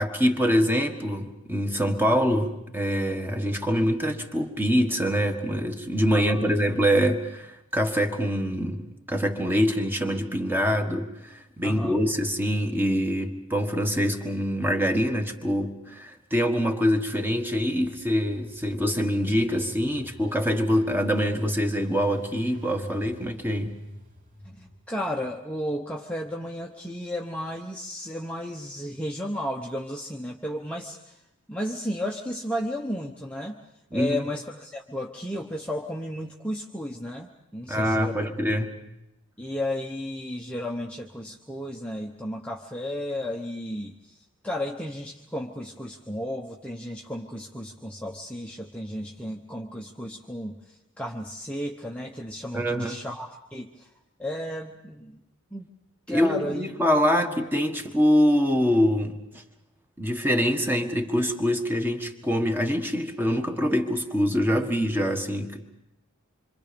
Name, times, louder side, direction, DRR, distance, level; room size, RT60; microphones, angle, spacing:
voice 1, 0.0-23.8 33.9-34.2 37.7-38.8 52.5-53.0 56.1-59.2 60.0-65.7, equal, 10° right, 5 dB, 1.4 m, -24 dB
voice 2, 6.1-6.5 11.6-12.0 24.4-31.2 31.5-33.6 33.9-38.2 39.4-53.9 54.2-55.2 55.5-55.7 56.1-56.7 57.1-57.2, equal, 5° left, -1 dB, 0.9 m, -33 dB
Engine, 17.2-25.1, equal, 40° right, 2.9 m, -44 dB
27.0 x 25.5 x 5.2 m, 0.87 s
head